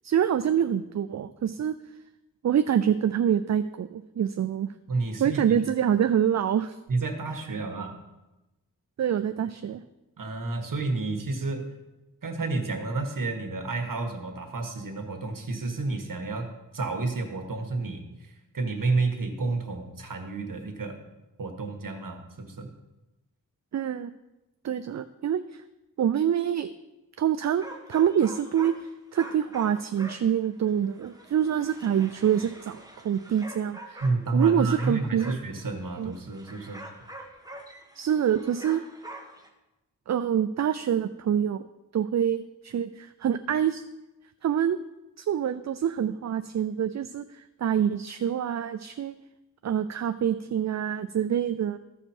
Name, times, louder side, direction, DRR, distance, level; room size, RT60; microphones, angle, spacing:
voice 1, 0.0-1.7 2.4-4.7 5.2-6.8 7.5-7.6 9.0-9.8 23.7-24.1 24.6-25.6 26.0-26.7 27.2-34.0 34.3-35.4 36.0-36.1 38.0-38.8 40.1-41.6 41.9-43.8 44.4-44.8 45.2-49.1 49.6-51.8, right 9 dB, 55° right, 10 dB, 0.4 m, -26 dB
voice 2, 4.9-5.6 6.9-8.0 10.2-11.8 12.2-21.0 21.4-22.7 34.0-36.8, right 3 dB, 75° right, 4 dB, 1.4 m, -30 dB
sound 1, 27.5-28.9 29.2-39.5, right 1 dB, 10° right, 1.4 m, -45 dB
14.5 x 4.9 x 4.4 m, 1.0 s
cardioid pair, 55°, 34 cm